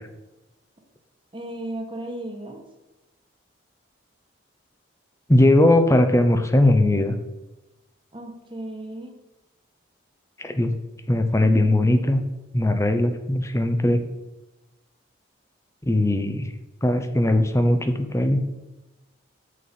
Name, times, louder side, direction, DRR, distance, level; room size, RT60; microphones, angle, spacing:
voice 1, 1.3-2.6 8.1-9.1, right 1 dB, 25° right, 3 dB, 1.4 m, -34 dB
voice 2, 5.3-7.2 10.4-10.7 11.1-12.2 12.5-14.0 15.8-16.5 16.8-18.4, left 1 dB, 15° left, 8 dB, 0.7 m, -19 dB
7.5 x 6.6 x 5.4 m, 1.1 s
head